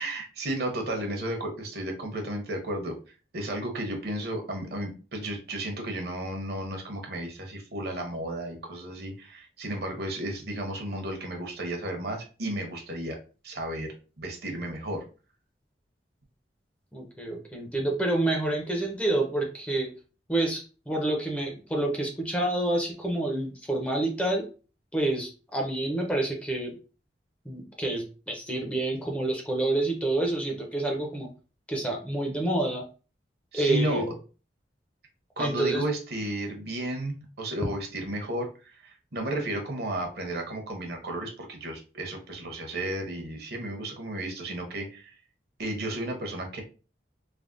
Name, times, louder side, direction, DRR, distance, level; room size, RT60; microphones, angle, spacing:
voice 1, 0.0-2.9 3.3-13.2 13.4-15.0 33.5-34.1 35.4-45.1 45.6-46.6, right 1 dB, 60° right, 3 dB, 0.8 m, -33 dB
voice 2, 16.9-19.9 20.3-24.4 24.9-26.7 27.5-31.3 31.7-32.8 33.5-34.1 35.4-35.8, right 2 dB, 5° left, 1 dB, 0.5 m, -28 dB
3.3 x 2.1 x 2.5 m, 0.34 s
head